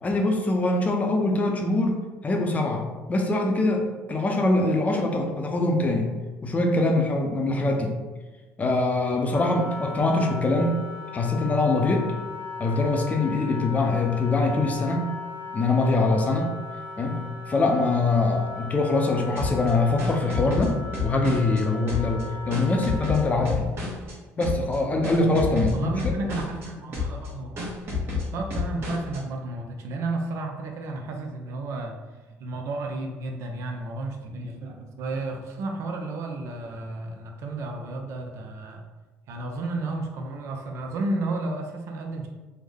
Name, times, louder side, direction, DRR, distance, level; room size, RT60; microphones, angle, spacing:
voice 1, 0.0-2.8 3.1-6.1 6.4-7.9 8.6-10.8 11.1-12.1 12.6-15.1 15.5-16.5 17.0-20.7 21.0-23.7 24.4-26.1, left 2 dB, 30° left, 3 dB, 0.6 m, -23 dB
Wind instrument woodwind instrument, 9.3-23.4, left 4 dB, 55° left, 0.9 m, -38 dB
sound 1, 19.4-21.6 21.9-24.1 24.4-24.8 25.0-26.7 26.9-27.3 27.6-29.2, left 4 dB, 45° right, 1.1 m, -30 dB
voice 2, 25.7-27.8 28.3-32.0 32.4-38.8 39.3-42.3, right 2 dB, 65° right, 3 dB, 0.5 m, -32 dB
3.4 x 2.1 x 3.5 m, 1.2 s
cardioid pair, 100°, 5 cm